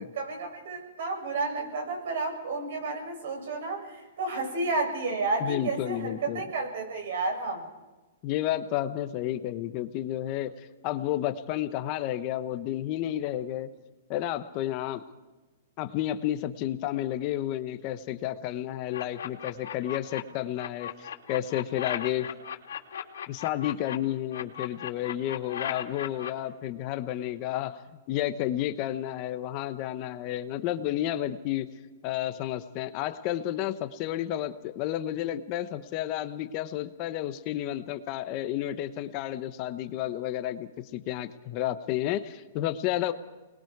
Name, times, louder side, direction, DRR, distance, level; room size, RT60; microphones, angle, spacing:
voice 1, 0.0-7.7, right 3 dB, 65° right, 3 dB, 7.8 m, -31 dB
voice 2, 5.4-6.4 8.2-10.5 10.8-13.7 14.1-15.0 15.8-22.3 23.3-27.8 28.1-31.7 32.0-43.1, left 13 dB, 35° left, 10 dB, 1.0 m, -31 dB
sound 1, 18.9-20.2 20.6-24.0 24.3-26.3, left 9 dB, 85° left, 2.8 m, -36 dB
29.0 x 21.0 x 4.7 m, 1.2 s
hypercardioid pair, 155°, 0 cm